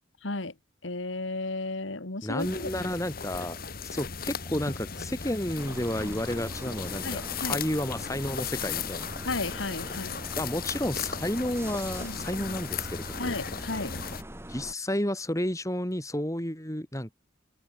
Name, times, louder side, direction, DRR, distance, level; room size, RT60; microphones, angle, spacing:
voice 1, 0.2-0.5 0.8-2.7 7.0-7.6 9.2-10.2 12.0-12.6 13.2-13.9, left 2 dB, 80° left, 2.3 m, -34 dB
voice 2, 2.2-3.6 3.8-9.1 10.4-13.4 14.5-17.1, left 1 dB, 15° left, 5.9 m, -31 dB
sound 1, 2.4-14.2, left 6 dB, 50° left, 2.0 m, -36 dB
sound 2, 5.6-14.7, right 1 dB, 15° right, 5.4 m, -43 dB
open air
head